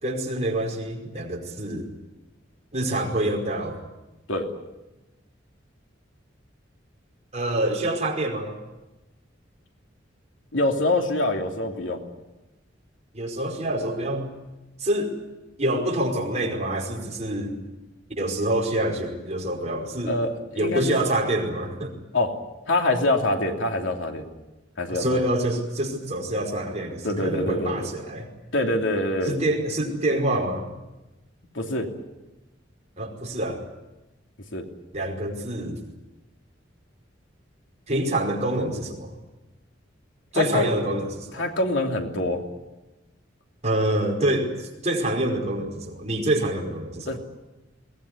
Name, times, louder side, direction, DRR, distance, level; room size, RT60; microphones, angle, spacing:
voice 1, 0.0-1.9 2.7-3.8 7.3-8.6 13.1-14.3 14.8-15.2 15.6-17.5 18.2-20.2 20.5-21.9 24.9-28.3 29.3-30.7 33.0-33.6 34.9-35.8 37.9-39.1 40.3-41.5 43.6-47.2, right 1 dB, 35° right, 0 dB, 5.1 m, -26 dB
voice 2, 10.5-12.0 20.0-21.1 22.1-22.3 22.6-24.3 24.8-25.0 27.0-27.9 28.5-29.4 31.5-31.9 34.5-34.7 40.3-40.7 41.3-42.4 47.1-47.2, left 2 dB, 90° left, 3 dB, 2.9 m, -25 dB
22.0 x 19.0 x 9.8 m, 1.0 s
head